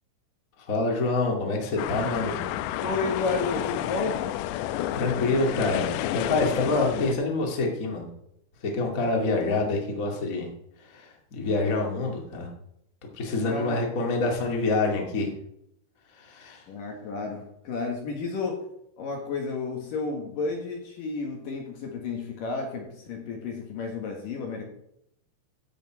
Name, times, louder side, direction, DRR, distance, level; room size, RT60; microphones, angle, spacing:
voice 1, 0.6-2.5 4.9-8.1 8.6-10.5 10.8-12.5 13.1-15.3 16.1-16.6, left 3 dB, 35° left, 0 dB, 1.4 m, -27 dB
sound 1, 1.8-7.1, left 13 dB, 85° left, 2.5 m, -30 dB
voice 2, 2.8-4.3 13.4-13.9 16.7-18.7 19.0-24.6, left 4 dB, 60° left, 1 dB, 2.7 m, -31 dB
15.5 x 7.1 x 4.8 m, 0.75 s
omnidirectional pair, 5.5 m